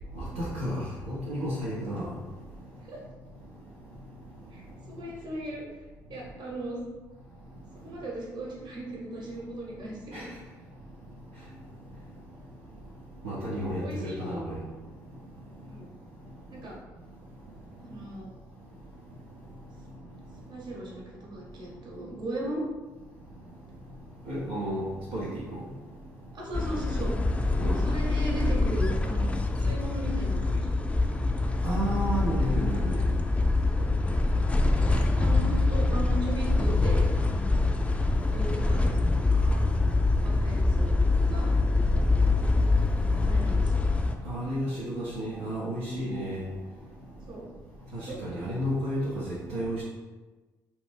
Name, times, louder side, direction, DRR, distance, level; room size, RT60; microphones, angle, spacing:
voice 1, 0.2-2.1 10.1-10.2 13.2-14.6 24.3-24.8 25.1-25.6 27.6-27.9 31.6-33.0 44.2-46.4 47.9-49.8, equal, 85° right, -9 dB, 0.6 m, -32 dB
voice 2, 4.5-5.6 6.1-6.8 7.8-10.3 13.4-14.3 15.6-15.9 16.5-16.8 17.8-18.3 20.5-22.6 26.3-27.1 27.8-30.7 33.7-33.9 34.7-37.6 38.3-39.0 40.2-40.9 41.3-41.5 43.2-43.8 47.3-47.5 48.0-48.2, right 1 dB, 50° right, -3 dB, 1.0 m, -37 dB
sound 1, 26.5-44.2, left 2 dB, 15° left, 0.3 m, -25 dB
2.5 x 2.5 x 3.3 m, 1.3 s
hypercardioid pair, 55°, 9 cm